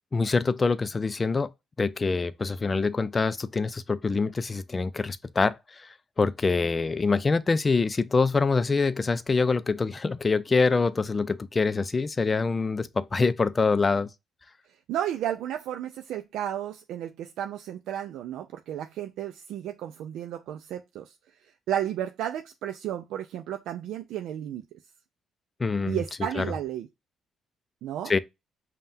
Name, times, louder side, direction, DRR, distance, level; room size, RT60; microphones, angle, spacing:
voice 1, 0.1-1.5 1.8-14.1 25.6-26.0 26.3-26.5 28.1-28.2, left 4 dB, 30° left, 0.4 m, -25 dB
voice 2, 14.9-21.1 21.7-24.6 25.9-26.9 27.8-28.1, right 11 dB, 85° right, 0.3 m, -33 dB
5.4 x 2.2 x 2.6 m
cardioid pair, 90°, 0 cm